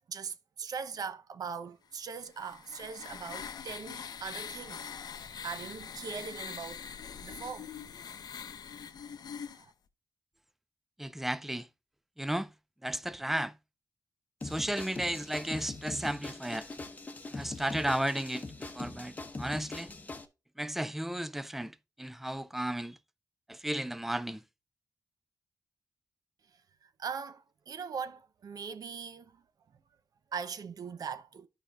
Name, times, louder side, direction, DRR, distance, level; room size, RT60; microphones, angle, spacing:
voice 1, 0.1-4.8 5.4-6.8 7.2-7.7 9.6-9.7 26.8-29.4 30.3-31.5, right 6 dB, 70° right, 0.7 m, -40 dB
sound 1, 2.1-9.7, left 7 dB, 85° left, 0.7 m, -43 dB
voice 2, 11.0-11.7 12.2-12.5 12.8-13.5 14.4-16.7 17.3-18.4 18.7-19.9 20.6-21.7 22.0-23.0 23.5-24.4, right 1 dB, 5° right, 0.3 m, -34 dB
sound 2, 14.4-20.3, left 2 dB, 25° left, 0.8 m, -42 dB
13.5 x 5.0 x 2.4 m
wide cardioid pair, 165°, 7 cm